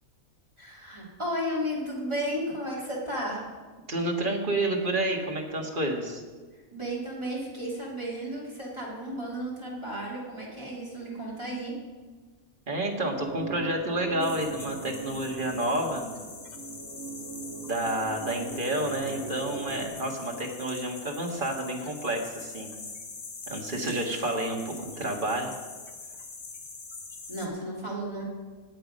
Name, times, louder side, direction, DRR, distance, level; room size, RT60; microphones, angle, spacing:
voice 1, 0.6-3.5 6.7-11.7 27.3-28.2, equal, 20° right, -6 dB, 2.9 m, -33 dB
voice 2, 3.9-6.2 12.7-16.1 17.6-22.7 23.5-25.5, right 1 dB, 40° right, 1 dB, 1.8 m, -30 dB
sound 1, 13.2-19.9, right 4 dB, 85° right, 1.8 m, -39 dB
sound 2, 14.2-27.5, left 4 dB, 45° left, 1.2 m, -43 dB
18.5 x 6.9 x 5.3 m, 1.4 s
omnidirectional pair, 1.4 m